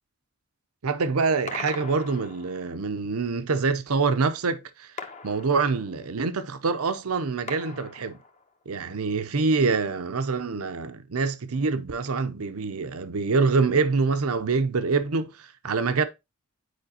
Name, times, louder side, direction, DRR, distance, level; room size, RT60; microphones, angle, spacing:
voice 1, 0.8-4.9 5.2-8.2 8.7-16.0, right 4 dB, 90° right, 0.7 m, -25 dB
sound 1, 1.5-2.8 5.0-6.2 7.5-8.6, left 4 dB, 35° left, 0.8 m, -40 dB
9.3 x 4.9 x 2.8 m
head